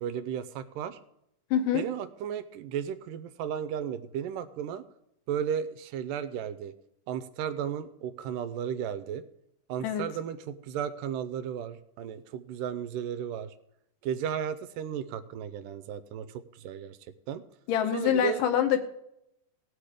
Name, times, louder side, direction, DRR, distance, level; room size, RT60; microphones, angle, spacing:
voice 1, 0.0-1.0 1.7-4.8 5.3-6.7 7.1-9.2 9.7-13.5 14.0-17.0 17.3-17.4 17.9-18.4, right 8 dB, 90° right, 13 dB, 2.3 m, -34 dB
voice 2, 1.5-1.8 9.8-10.1 17.7-18.8, left 9 dB, 80° left, 6 dB, 2.5 m, -25 dB
17.5 x 6.5 x 5.0 m, 0.81 s
omnidirectional pair, 3.8 m